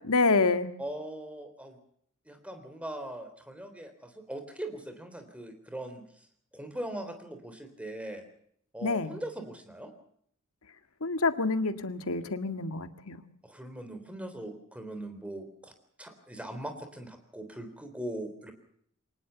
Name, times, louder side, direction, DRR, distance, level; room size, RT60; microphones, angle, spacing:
voice 1, 0.0-0.7 8.8-9.2 11.0-13.2, left 3 dB, 75° left, 10 dB, 1.8 m, -27 dB
voice 2, 0.8-1.8 2.3-6.3 6.5-8.2 8.7-9.9 13.4-15.7 16.0-18.5, right 1 dB, 5° right, 8 dB, 3.6 m, -40 dB
23.5 x 19.5 x 7.0 m, 0.65 s
head